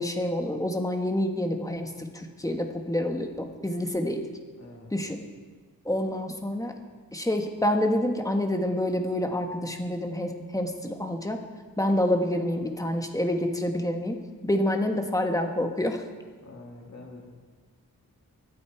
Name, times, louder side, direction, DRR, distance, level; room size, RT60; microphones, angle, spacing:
voice 1, 0.0-4.2 4.9-5.2 5.8-6.7 7.1-11.4 11.8-14.2 14.4-16.0, left 1 dB, 10° left, 4 dB, 1.4 m, -27 dB
voice 2, 4.6-4.9 16.3-17.3, left 2 dB, 45° left, -1 dB, 3.0 m, -46 dB
24.5 x 8.6 x 4.5 m, 1.5 s
wide cardioid pair, 110°, 36 cm